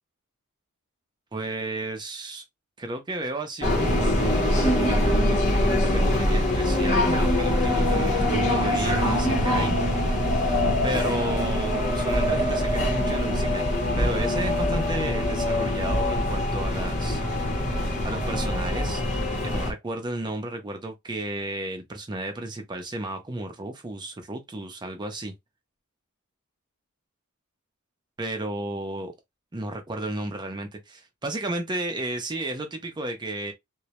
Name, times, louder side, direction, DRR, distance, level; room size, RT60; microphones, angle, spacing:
voice 1, 1.3-2.4 2.8-9.8 10.8-13.7 14.0-17.2 18.0-19.0 19.4-25.3 28.2-29.1 29.5-33.5, right 2 dB, 20° right, 0.5 m, -33 dB
sound 1, 3.6-19.7, left 1 dB, 35° left, 0.7 m, -23 dB
2.1 x 2.0 x 2.8 m
head